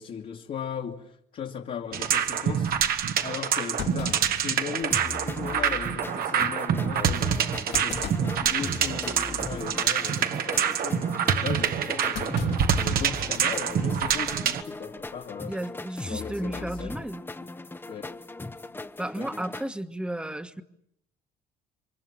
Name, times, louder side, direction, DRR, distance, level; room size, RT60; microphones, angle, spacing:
voice 1, 0.0-2.8 3.2-11.1 11.4-12.5 12.8-15.5 16.1-17.1 17.9-18.1 19.2-19.3, left 7 dB, 55° left, 2.1 m, -37 dB
sound 1, 1.9-14.6, right 8 dB, 60° right, 1.5 m, -26 dB
Thump thud, 2.3-2.4 2.9-3.0 3.8-5.1 5.5-5.6 6.1-6.3 7.7-8.4 8.8-9.1 9.9-10.2 12.1-13.4 13.7-13.8 14.9-15.2, left 9 dB, 70° left, 2.7 m, -39 dB
sound 2, 4.9-19.7, left 3 dB, 10° left, 1.0 m, -39 dB
voice 2, 15.5-17.2 19.0-20.6, right 1 dB, 5° right, 1.4 m, -33 dB
28.5 x 24.0 x 7.5 m
cardioid pair, 110°, 17 cm